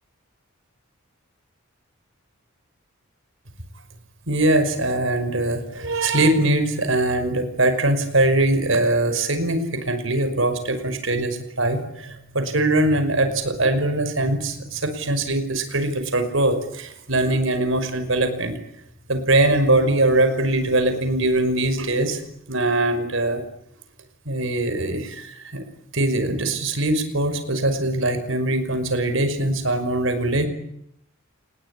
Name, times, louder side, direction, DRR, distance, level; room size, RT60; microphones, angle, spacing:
voice 1, 4.3-18.6 19.1-22.2 22.5-23.4 24.3-25.6 25.9-30.5, right 2 dB, 65° right, 10 dB, 5.7 m, -22 dB
29.0 x 20.5 x 9.9 m, 0.76 s
head